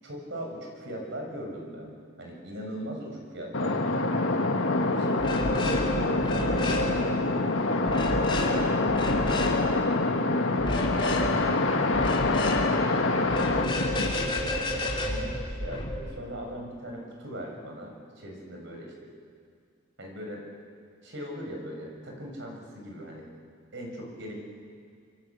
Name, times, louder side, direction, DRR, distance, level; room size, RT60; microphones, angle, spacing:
voice 1, 0.0-1.9 2.2-4.2 4.9-7.1 7.6-12.5 14.0-14.6 15.0-19.1 20.0-20.4 21.0-23.3 23.7-24.4, equal, 60° right, 0 dB, 6.3 m, -39 dB
sound 1, 3.5-14.1, left 2 dB, 70° left, 1.9 m, -26 dB
sound 2, 5.2-5.9 6.2-6.9 7.9-8.5 8.9-9.6 10.6-11.3 11.9-12.6 13.2-15.9, left 2 dB, 25° left, 3.7 m, -31 dB
26.5 x 24.0 x 8.5 m, 2.2 s
head